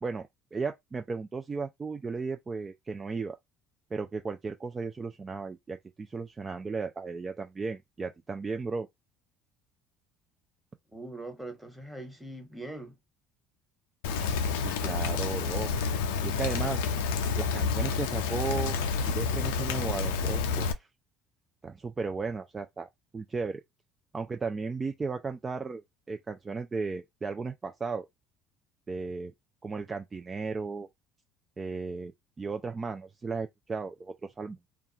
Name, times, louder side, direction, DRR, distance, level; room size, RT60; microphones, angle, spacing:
voice 1, 0.0-3.4 3.9-8.9 14.6-15.7 16.2-16.9 17.4-20.9 21.6-23.6 24.1-25.8 26.1-28.1 28.9-29.3 29.6-30.9 31.6-34.6, right 4 dB, 30° right, 0.4 m, -35 dB
voice 2, 10.9-12.9, right 2 dB, ahead, 1.3 m, -42 dB
Rain, 14.0-20.7, left 5 dB, 80° left, 0.4 m, -29 dB
2.4 x 2.3 x 2.8 m
hypercardioid pair, 70°, 0 cm